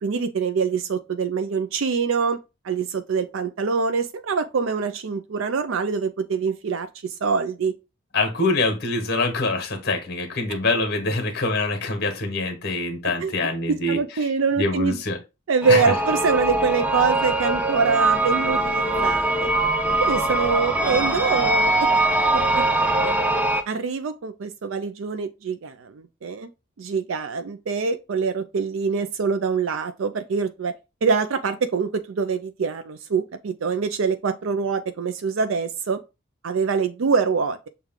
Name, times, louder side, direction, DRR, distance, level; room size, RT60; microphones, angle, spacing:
voice 1, 0.0-2.4 2.6-7.7 10.5-10.6 13.2-13.3 13.7-15.0 15.5-19.5 20.0-21.7 22.3-22.8 23.0-23.1 23.7-26.5 26.8-30.7 31.0-36.0 36.4-37.7, right 5 dB, 75° right, 0.4 m, -24 dB
voice 2, 8.1-14.0 14.6-15.2 15.7-15.8, left 2 dB, 50° left, 1.3 m, -24 dB
sound 1, 15.6-23.6, right 2 dB, 5° right, 0.5 m, -22 dB
6.4 x 2.3 x 3.6 m
head